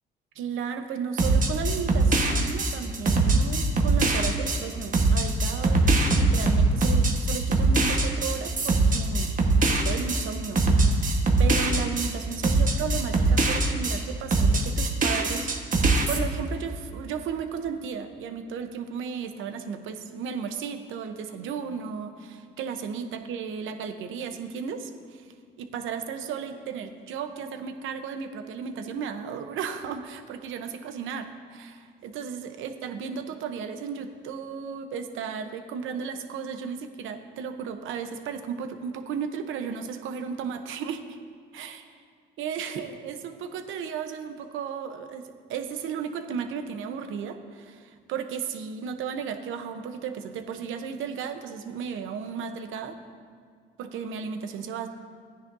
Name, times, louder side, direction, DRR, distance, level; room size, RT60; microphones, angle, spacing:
voice 1, 0.3-9.3 9.6-11.1 11.4-15.5 16.1-41.2 41.5-42.0 42.4-53.0 53.8-54.9, right 6 dB, 85° right, 7 dB, 0.9 m, -34 dB
sound 1, 1.2-14.0 14.3-16.2, right 2 dB, 40° right, 1.4 m, -22 dB
15.0 x 9.9 x 2.7 m, 2.2 s
cardioid pair, 90°, 20 cm